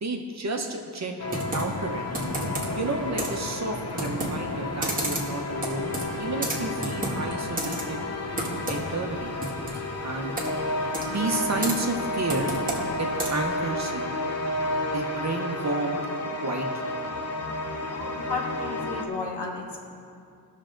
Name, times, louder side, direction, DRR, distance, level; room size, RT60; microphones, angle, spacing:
voice 1, 0.0-2.0 2.8-8.0 8.7-9.3 10.0-10.4 11.1-12.5 13.0-14.1 14.9-16.0 16.4-17.0, right 3 dB, 40° right, 3 dB, 0.9 m, -31 dB
sound 1, 1.2-19.1, left 2 dB, 35° left, 0.8 m, -31 dB
Computer keyboard, 1.3-13.6, right 1 dB, 20° right, 1.5 m, -33 dB
voice 2, 17.7-19.8, left 3 dB, 70° left, 0 dB, 1.6 m, -33 dB
18.5 x 6.4 x 3.8 m, 2.4 s
wide cardioid pair, 150°, 42 cm